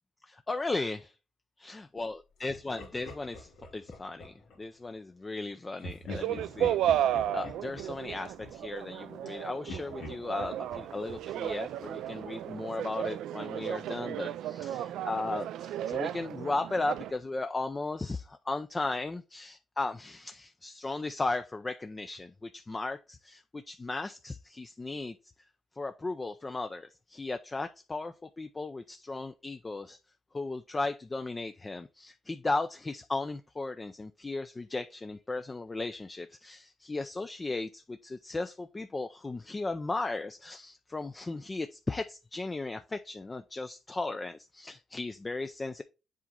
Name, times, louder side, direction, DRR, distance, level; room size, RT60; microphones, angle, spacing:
voice 1, 0.3-1.1 1.6-25.2 25.8-30.0 30.3-45.8, left 3 dB, 25° left, 0.5 m, -36 dB
Laughter, 2.5-4.6 5.8-9.3 9.7-12.4, left 2 dB, 80° left, 2.6 m, -46 dB
sound 1, 6.1-17.1, right 11 dB, 80° right, 0.3 m, -34 dB
7.5 x 4.1 x 3.7 m
cardioid pair, 90°, 0 cm